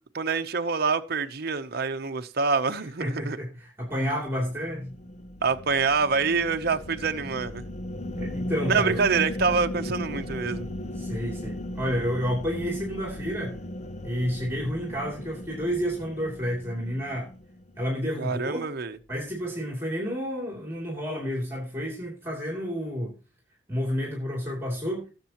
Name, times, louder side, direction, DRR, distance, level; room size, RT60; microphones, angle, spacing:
voice 1, 0.1-3.4 5.4-7.6 8.7-10.7 18.2-19.0, right 5 dB, 55° right, 0.8 m, -26 dB
voice 2, 3.0-4.9 8.2-9.0 10.9-13.6 14.0-17.3 17.8-18.7 19.1-23.1 23.7-25.0, equal, 15° right, 3.0 m, -30 dB
sound 1, 4.3-17.8, left 1 dB, 35° left, 0.7 m, -36 dB
18.5 x 7.4 x 3.0 m
head